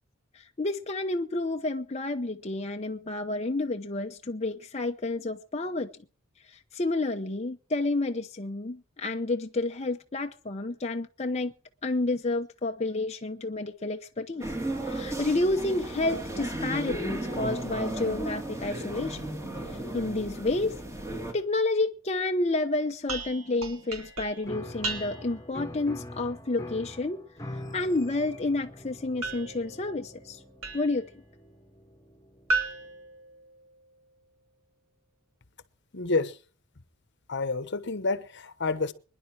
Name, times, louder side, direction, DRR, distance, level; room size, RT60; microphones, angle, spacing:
voice 1, 0.4-5.9 6.7-11.5 11.8-14.4 14.8-19.3 19.9-20.8 21.3-27.2 27.7-30.4 30.7-31.1, left 2 dB, 30° left, 0.8 m, -30 dB
sound 1, 14.4-21.3, right 1 dB, 15° right, 2.5 m, -34 dB
sound 2, 23.1-25.5 29.2-31.1 32.5-34.0, right 3 dB, 85° right, 2.9 m, -35 dB
Piano, 24.4-32.9, left 1 dB, 15° left, 1.5 m, -44 dB
voice 2, 35.9-36.4 37.3-38.9, left 3 dB, 55° left, 1.1 m, -29 dB
24.5 x 11.0 x 4.8 m
head